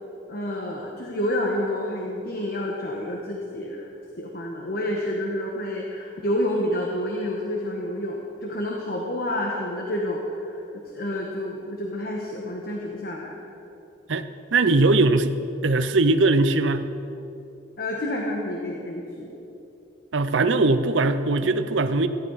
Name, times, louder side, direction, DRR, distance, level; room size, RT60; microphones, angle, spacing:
voice 1, 0.3-3.9 4.2-13.4 17.8-19.3 21.4-21.5, left 1 dB, 50° left, -1 dB, 1.4 m, -29 dB
voice 2, 14.1-15.3 15.6-16.9 20.1-22.1, right 3 dB, 70° right, 10 dB, 0.7 m, -20 dB
18.0 x 15.0 x 4.2 m, 2.9 s
head